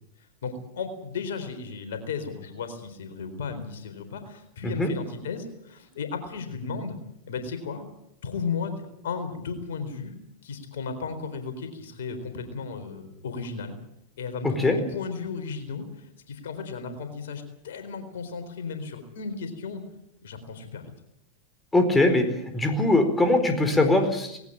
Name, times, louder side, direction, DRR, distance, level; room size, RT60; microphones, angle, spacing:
voice 1, 0.4-7.0 7.3-7.9 8.2-10.2 10.4-13.8 14.2-19.8 20.2-20.9, left 5 dB, 70° left, 8 dB, 4.1 m, -35 dB
voice 2, 14.4-14.8 21.7-22.3 22.5-24.4, left 2 dB, 10° left, 7 dB, 4.4 m, -21 dB
19.5 x 17.5 x 9.0 m, 0.77 s
hypercardioid pair, 95°, 0 cm